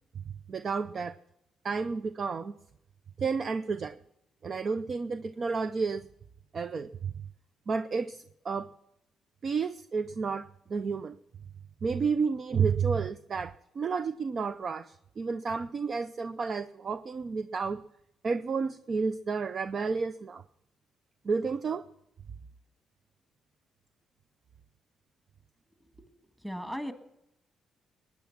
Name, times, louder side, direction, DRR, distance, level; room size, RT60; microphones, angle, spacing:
voice 1, 0.5-1.1 1.6-2.5 3.2-4.0 4.4-6.1 6.5-7.1 7.7-8.7 9.4-11.2 11.8-17.8 18.2-20.4 21.2-21.9, right 5 dB, 45° right, 12 dB, 0.5 m, -31 dB
voice 2, 26.4-26.9, equal, 5° right, 7 dB, 1.7 m, -36 dB
21.0 x 9.5 x 5.9 m, 0.85 s
cardioid pair, 100°, 0 cm